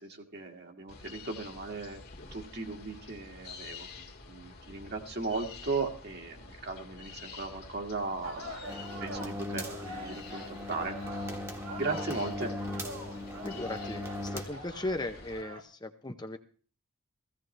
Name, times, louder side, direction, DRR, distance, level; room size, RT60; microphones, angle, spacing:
voice 1, 0.0-2.0 2.3-3.9 4.3-8.5 9.0-11.0 11.7-12.5, right 3 dB, 45° right, 3 dB, 1.9 m, -37 dB
sound 1, 0.9-15.4, left 4 dB, 45° left, 1.9 m, -49 dB
sound 2, 8.2-15.6, equal, 65° right, 2.2 m, -44 dB
sound 3, 8.7-14.4, left 1 dB, 10° right, 1.4 m, -39 dB
voice 2, 13.4-16.4, left 2 dB, 20° left, 7 dB, 0.7 m, -37 dB
16.5 x 15.5 x 3.3 m, 0.41 s
head